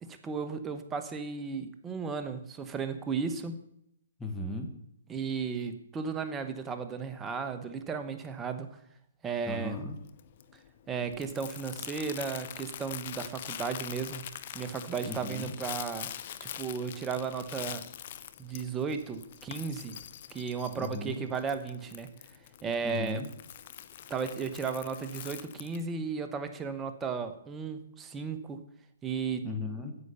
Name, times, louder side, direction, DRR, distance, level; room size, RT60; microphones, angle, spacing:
voice 1, 0.0-3.6 5.1-8.7 9.2-9.8 10.9-14.3 14.5-16.1 16.4-17.8 18.4-20.0 20.3-22.1 22.6-23.2 24.1-28.6 29.0-29.5, right 5 dB, 15° right, 8 dB, 1.1 m, -35 dB
voice 2, 4.2-4.7 9.5-10.0 15.0-15.5 20.8-21.3 22.8-23.3 29.4-29.9, left 2 dB, 5° left, 3 dB, 1.6 m, -36 dB
Crumpling crinkling, 9.4-25.8, left 11 dB, 45° left, 0.8 m, -44 dB
9.7 x 8.1 x 6.9 m, 0.77 s
hypercardioid pair, 145°, 0 cm